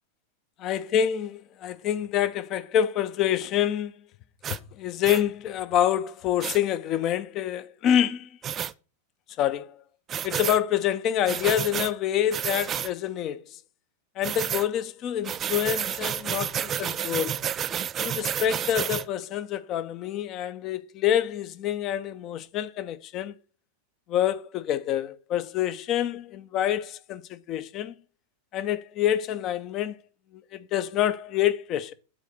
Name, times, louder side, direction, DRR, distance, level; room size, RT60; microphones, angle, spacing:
voice 1, 0.6-3.9 4.8-8.3 9.4-9.8 10.2-13.4 14.2-17.4 18.0-23.3 24.1-27.9 28.5-30.0 30.3-31.9, left 10 dB, 35° left, 0.6 m, -27 dB
sound 1, 4.4-4.6 5.0-5.2 6.4-6.6 8.4-8.7 10.1-10.6 11.3-11.9 12.3-12.9 14.2-14.7 15.2-19.0, right 9 dB, 25° right, 0.4 m, -30 dB
8.2 x 4.1 x 6.2 m
figure-of-eight pair, 90°, 0 cm